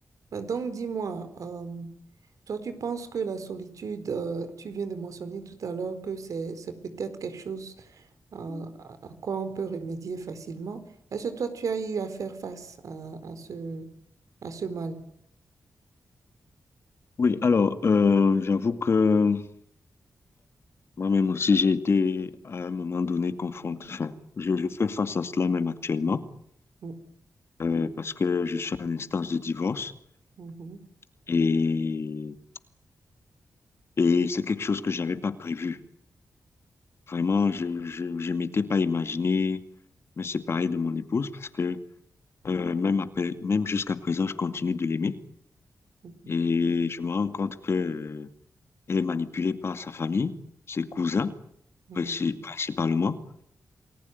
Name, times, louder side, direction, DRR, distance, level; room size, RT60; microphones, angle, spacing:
voice 1, 0.3-1.9 2.5-8.0 8.3-10.8 11.1-13.9 14.4-15.0 26.8-26.9 30.4-30.8 46.0-46.5 51.9-52.1, right 5 dB, 75° right, 10 dB, 4.3 m, -34 dB
voice 2, 17.2-19.5 21.0-26.2 27.6-29.9 31.3-32.4 34.0-35.8 37.1-39.6 40.2-41.8 42.4-45.2 46.3-48.3 48.9-50.4 50.7-51.3 51.9-53.2, left 5 dB, 45° left, 10 dB, 2.1 m, -26 dB
29.0 x 20.0 x 9.4 m, 0.71 s
wide cardioid pair, 130°, 6 cm